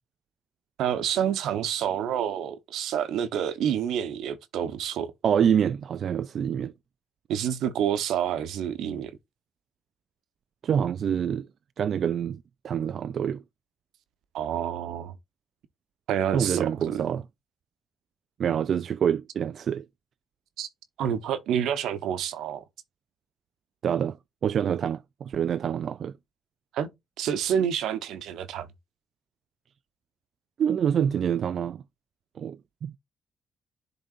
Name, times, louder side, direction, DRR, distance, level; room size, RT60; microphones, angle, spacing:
voice 1, 0.8-5.1 7.3-9.1 14.3-15.1 16.1-17.0 20.6-20.7 21.0-22.6 26.7-26.9 27.2-28.7, right 9 dB, 80° right, 1.1 m, -28 dB
voice 2, 5.2-6.7 10.6-11.5 11.8-13.4 16.3-17.2 18.4-19.9 23.8-24.2 24.4-26.1 30.6-31.8 32.4-32.9, right 8 dB, 60° right, 0.4 m, -26 dB
11.0 x 3.9 x 2.5 m
cardioid pair, 90°, 0 cm